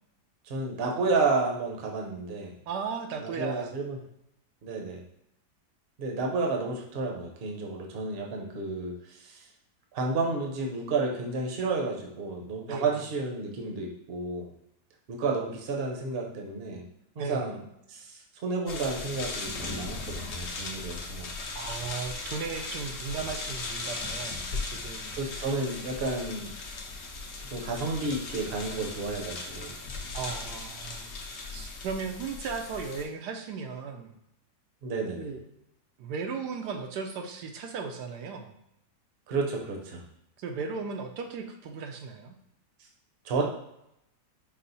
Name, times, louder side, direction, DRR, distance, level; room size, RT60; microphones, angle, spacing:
voice 1, 0.4-2.5 3.2-4.0 4.6-5.0 6.0-9.4 9.9-14.5 15.1-16.8 17.2-17.6 17.9-21.3 25.1-26.5 27.5-29.8 34.8-35.3 39.3-40.0 43.2-43.4, right 3 dB, 50° right, 0 dB, 0.8 m, -31 dB
voice 2, 2.7-3.7 12.7-13.0 17.2-17.4 21.5-25.1 30.1-31.2 31.5-34.2 35.2-35.4 36.0-38.5 40.4-42.4, right 5 dB, 85° right, 4 dB, 1.2 m, -36 dB
sound 1, 18.7-33.0, left 3 dB, 55° left, 0.8 m, -38 dB
5.4 x 2.1 x 4.0 m, 0.81 s
omnidirectional pair, 1.8 m